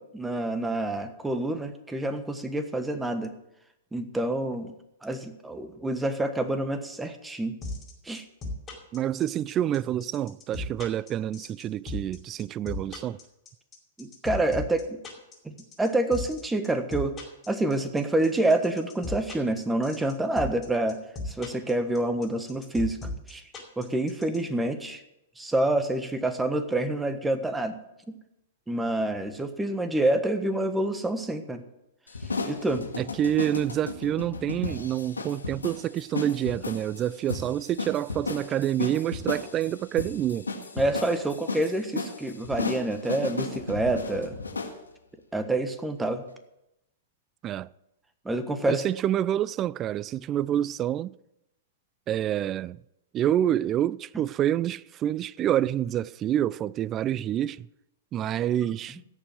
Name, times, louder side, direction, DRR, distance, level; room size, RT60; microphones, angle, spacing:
voice 1, 0.0-3.3 3.9-4.7 5.0-7.6 8.0-8.2 14.0-15.0 15.4-17.1 17.5-21.0 21.3-23.0 23.3-23.4 23.8-25.0 25.4-27.8 28.1-28.2 28.7-31.6 32.4-32.9 40.8-44.4 45.3-46.2 48.2-48.8, right 1 dB, 10° right, 1.4 m, -27 dB
sound 1, 7.6-24.4, left 2 dB, 20° left, 4.7 m, -36 dB
voice 2, 8.9-13.2 33.0-40.5 47.4-47.7 48.7-51.1 52.1-52.8 53.1-57.7 58.1-59.0, right 11 dB, 30° right, 0.4 m, -27 dB
sound 2, 32.1-44.8, left 3 dB, 90° left, 1.9 m, -35 dB
17.0 x 7.0 x 7.7 m
hypercardioid pair, 110°, 0 cm